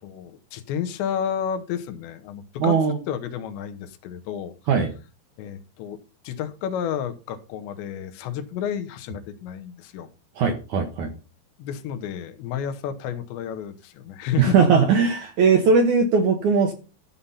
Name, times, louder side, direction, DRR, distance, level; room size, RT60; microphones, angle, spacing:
voice 1, 0.0-2.8 3.1-4.5 5.4-6.0 6.2-10.1 11.6-14.5, left 9 dB, 80° left, 9 dB, 3.2 m, -31 dB
voice 2, 2.6-3.0 4.7-4.9 10.4-11.1 14.4-16.7, right 5 dB, 75° right, 5 dB, 1.8 m, -19 dB
13.0 x 5.7 x 5.5 m, 0.35 s
omnidirectional pair, 5.1 m